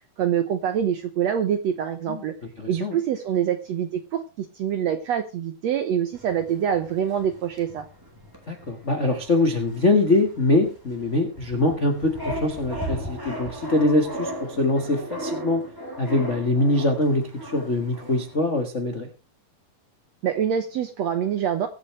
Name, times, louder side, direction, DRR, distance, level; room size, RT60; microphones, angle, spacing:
voice 1, 0.2-2.3 2.7-7.8 20.2-21.7, right 9 dB, 70° right, 8 dB, 1.6 m, -25 dB
voice 2, 2.6-3.0 8.5-15.6 16.0-19.1, left 2 dB, 60° left, 4 dB, 0.7 m, -23 dB
sound 1, 6.1-18.4, equal, 5° right, 3.3 m, -37 dB
22.5 x 8.3 x 3.2 m, 0.30 s
omnidirectional pair, 4.1 m